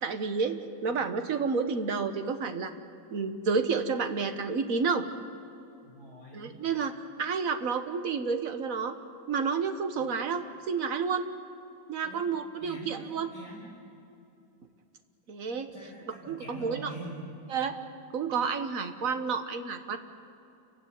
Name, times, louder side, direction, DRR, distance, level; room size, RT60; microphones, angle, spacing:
voice 1, 0.0-2.7 3.1-5.0 6.3-6.9 7.2-8.9 9.3-11.3 11.9-13.3 15.3-15.7 16.3-16.9 17.5-17.7 18.1-20.0, right 5 dB, 50° right, 8 dB, 1.7 m, -30 dB
voice 2, 5.8-6.6 10.0-10.1 12.0-12.3 12.6-13.7 15.7-17.3, right 1 dB, 55° left, -7 dB, 5.6 m, -45 dB
29.0 x 16.0 x 9.5 m, 2.7 s
omnidirectional pair, 2.0 m